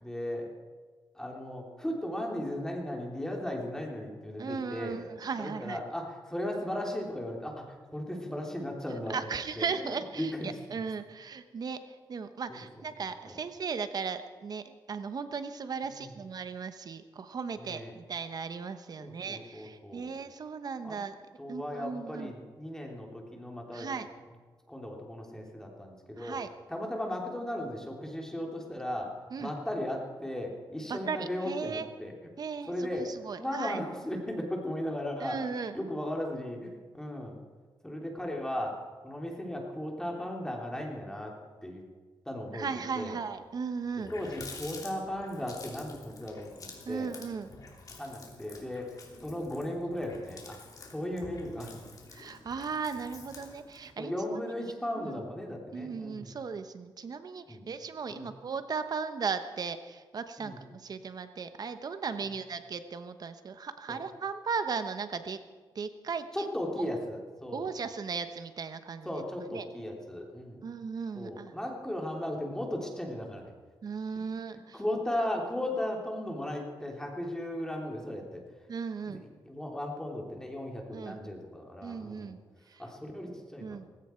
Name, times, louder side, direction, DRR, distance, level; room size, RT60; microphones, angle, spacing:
voice 1, 0.0-0.5 1.1-5.1 5.4-10.6 12.5-12.6 13.2-13.4 15.8-16.1 17.6-17.9 19.0-20.1 20.8-21.0 21.4-23.9 24.7-26.4 26.7-32.1 32.7-33.1 33.4-35.5 35.7-37.4 37.8-38.8 39.0-41.3 41.6-41.8 42.2-43.2 44.1-47.1 48.0-50.6 50.8-51.8 54.0-56.3 57.5-57.6 58.1-58.3 60.4-60.6 63.9-64.0 66.3-67.7 69.0-70.6 71.1-73.5 74.7-78.4 79.0-79.2 79.4-82.4 82.8-83.8, left 1 dB, 5° left, 0 dB, 3.2 m, -36 dB
voice 2, 4.4-5.8 9.1-11.8 12.1-21.1 21.5-22.3 23.7-24.1 26.2-26.5 29.3-29.5 30.9-31.9 32.4-33.8 35.2-35.8 42.5-44.1 46.9-47.5 52.1-54.1 54.5-55.2 55.7-65.4 65.7-66.5 67.5-69.2 69.5-69.7 70.6-71.5 73.8-74.8 78.7-79.2 80.9-81.2 81.8-82.4 82.7-82.8 83.6-83.9, right 5 dB, 55° right, 10 dB, 1.1 m, -37 dB
Water tap faucet, 43.5-43.6 43.8-53.9, left 3 dB, 50° left, 3.1 m, -49 dB
18.5 x 16.5 x 4.6 m, 1.4 s
cardioid pair, 95°, 8 cm